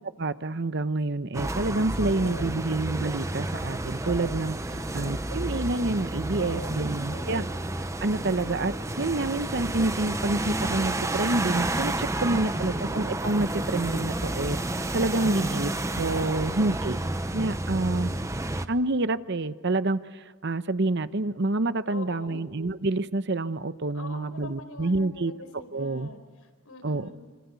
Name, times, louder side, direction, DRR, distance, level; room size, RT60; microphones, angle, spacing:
voice 1, 0.2-7.4 8.0-14.6 14.9-15.7 16.0-17.0 17.3-18.1 18.7-25.3 25.7-26.1 26.8-27.1, right 2 dB, 50° right, 13 dB, 0.9 m, -28 dB
sound 1, 1.3-18.7, right 1 dB, 15° right, 0.8 m, -30 dB
voice 2, 2.0-2.6 4.7-5.2 6.4-7.5 12.2-12.8 15.2-15.6 16.2-16.8 21.9-22.5 23.9-27.1, left 2 dB, 80° left, 6 dB, 4.7 m, -44 dB
27.5 x 25.5 x 8.3 m, 1.5 s
head